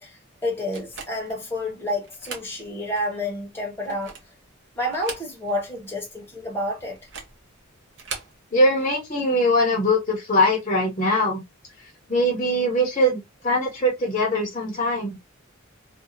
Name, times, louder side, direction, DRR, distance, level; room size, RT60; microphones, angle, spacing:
voice 1, 0.0-4.1 4.7-7.0, left 1 dB, 10° left, 0.9 m, -29 dB
sound 1, 0.7-1.4 2.0-2.5 3.0-3.1 3.7-4.4 4.9-5.7 5.9-6.0 7.0-7.4 7.9-8.4, right 5 dB, 60° right, 0.8 m, -38 dB
voice 2, 8.5-11.4 12.1-15.2, left 1 dB, 30° left, 0.8 m, -22 dB
2.7 x 2.3 x 2.6 m
head